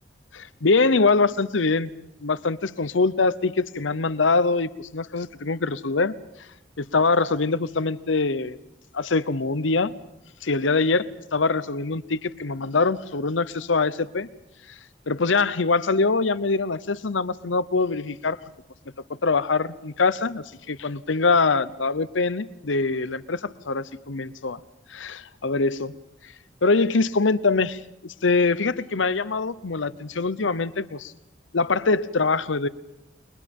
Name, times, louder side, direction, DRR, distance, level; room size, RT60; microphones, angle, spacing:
voice 1, 0.3-1.9 2.2-6.1 6.8-8.6 8.9-9.9 10.4-14.3 15.1-18.4 19.2-24.6 24.9-26.0 26.6-31.1 31.5-32.7, left 3 dB, 90° left, 15 dB, 0.9 m, -23 dB
29.5 x 22.5 x 5.4 m, 0.86 s
head